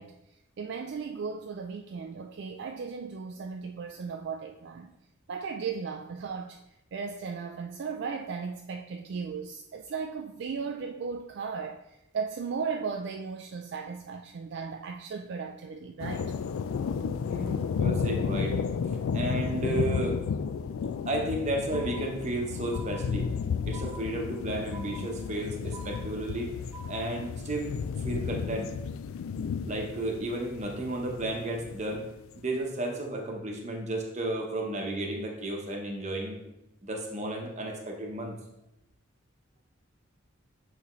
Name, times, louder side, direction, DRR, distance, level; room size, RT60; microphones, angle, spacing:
voice 1, 0.0-4.9 5.3-16.3, right 5 dB, 55° right, 4 dB, 0.3 m, -36 dB
sound 1, 16.0-32.1, left 6 dB, 75° left, 0.3 m, -33 dB
voice 2, 17.2-18.6 19.1-20.2 21.1-23.3 23.7-26.5 26.9-27.8 28.0-28.7 29.6-32.1 32.4-36.5 36.8-38.4, right 1 dB, 35° right, 1 dB, 0.9 m, -33 dB
sound 2, 21.7-22.4 22.7-23.4 23.7-24.4 24.7-25.4 25.7-26.4 26.7-27.2, right 3 dB, 15° left, 1.9 m, -47 dB
8.1 x 4.1 x 3.1 m, 0.90 s
head